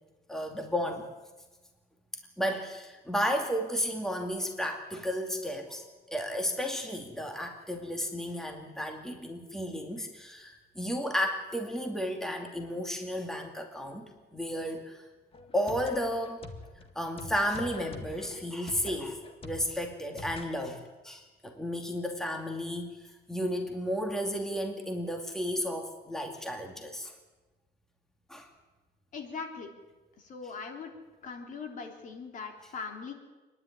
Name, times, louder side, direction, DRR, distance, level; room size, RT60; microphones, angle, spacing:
voice 1, 0.3-1.1 2.4-15.0 15.5-16.5 17.0-27.1 28.3-28.5, equal, 5° left, 3 dB, 2.4 m, -33 dB
sound 1, 15.3-20.5, left 3 dB, 35° left, 1.9 m, -44 dB
voice 2, 29.1-29.7 30.2-30.9 31.2-33.1, left 5 dB, 50° left, 3 dB, 3.5 m, -40 dB
26.5 x 11.0 x 9.7 m, 1.2 s
cardioid pair, 110°, 17 cm